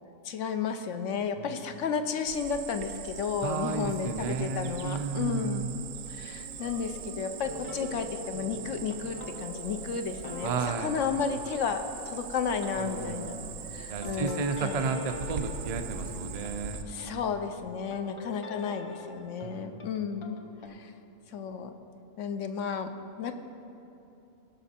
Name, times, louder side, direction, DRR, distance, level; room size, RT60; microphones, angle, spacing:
voice 1, 0.2-5.7 6.1-13.3 13.7-15.0 16.9-20.4 20.7-20.9 21.3-21.7 22.2-22.9 23.2-23.3, left 6 dB, 65° left, 7 dB, 0.9 m, -33 dB
Cricket, 2.3-16.8, right 7 dB, 70° right, 1.0 m, -41 dB
voice 2, 3.4-5.7 10.4-10.9 12.8-13.4 13.9-17.3 19.4-19.9, right 5 dB, 50° right, 6 dB, 0.4 m, -33 dB
sound 1, 6.6-17.2 17.9-20.7, left 3 dB, 45° left, 0.4 m, -44 dB
17.5 x 6.0 x 4.3 m, 2.9 s
omnidirectional pair, 1.5 m